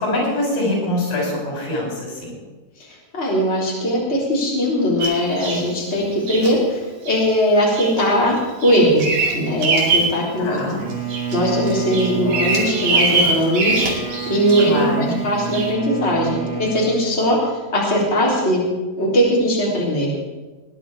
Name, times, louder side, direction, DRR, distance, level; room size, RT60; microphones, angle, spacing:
voice 1, 0.0-2.4 10.4-10.8 14.7-15.2, left 1 dB, 90° left, -2 dB, 7.2 m, -23 dB
voice 2, 3.1-6.8 7.1-9.1 9.3-10.6 11.3-17.4 17.7-18.6 19.0-20.1, equal, 20° left, -4 dB, 3.8 m, -19 dB
Bird vocalization bird call bird song, 5.0-5.7 6.3-6.5 7.1-7.3 7.8-8.0 8.4-10.2 10.6-11.4 11.7-14.8 15.5-15.7, right 3 dB, 70° right, 4.0 m, -22 dB
Bowed string instrument, 10.8-17.1, right 5 dB, 10° right, 3.8 m, -29 dB
20.5 x 10.5 x 4.9 m, 1.2 s
omnidirectional pair, 3.9 m